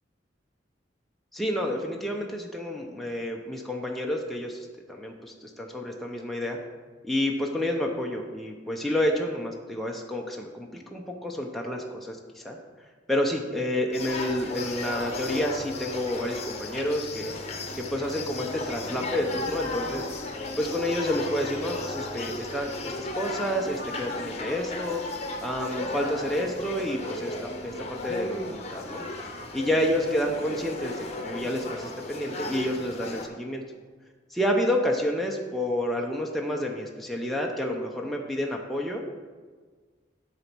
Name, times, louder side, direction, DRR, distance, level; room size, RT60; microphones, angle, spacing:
voice 1, 1.3-6.6 7.0-12.6 13.1-17.3 17.8-20.1 20.6-22.7 23.0-25.0 25.4-29.1 29.5-33.6 34.3-39.0, left 1 dB, ahead, 0 dB, 0.6 m, -29 dB
sound 1, 13.9-33.3, left 2 dB, 35° left, 0.9 m, -35 dB
10.0 x 4.1 x 6.0 m, 1.5 s
head